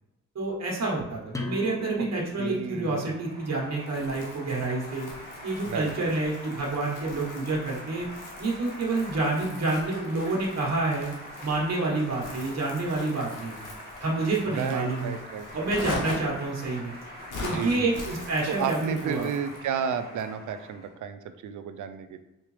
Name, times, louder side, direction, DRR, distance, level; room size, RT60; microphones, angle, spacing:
voice 1, 0.3-5.1 5.4-8.1 8.4-11.1 11.4-13.6 14.0-15.1 15.5-16.9 17.4-19.3, right 2 dB, 55° right, -3 dB, 1.2 m, -28 dB
sound 1, 1.3-6.7, left 2 dB, 10° left, 0.6 m, -43 dB
Applause, 2.3-20.9, equal, 30° left, 1.5 m, -44 dB
voice 2, 2.4-3.1 5.6-6.2 14.5-15.7 17.4-17.9 18.5-22.2, right 7 dB, 75° right, 9 dB, 0.4 m, -33 dB
Crumpling crinkling, 3.9-19.7, left 2 dB, 85° left, 0.9 m, -42 dB
3.7 x 3.3 x 3.1 m, 0.96 s
cardioid pair, 70°, 30 cm